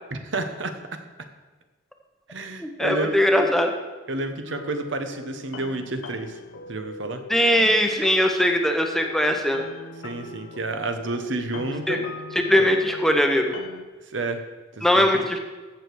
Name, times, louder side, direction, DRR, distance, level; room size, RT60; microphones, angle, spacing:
voice 1, 0.1-0.7 2.3-3.2 4.1-6.4 6.7-7.2 10.0-12.1 12.5-12.7 14.1-14.4 14.7-15.2, right 2 dB, 65° right, 7 dB, 1.1 m, -30 dB
voice 2, 2.6-3.7 7.3-9.6 11.9-12.0 12.3-13.5 14.8-15.4, equal, ahead, 4 dB, 0.8 m, -20 dB
sound 1, 4.5-13.8, left 3 dB, 80° left, 0.8 m, -41 dB
15.0 x 7.0 x 4.7 m, 1.3 s
head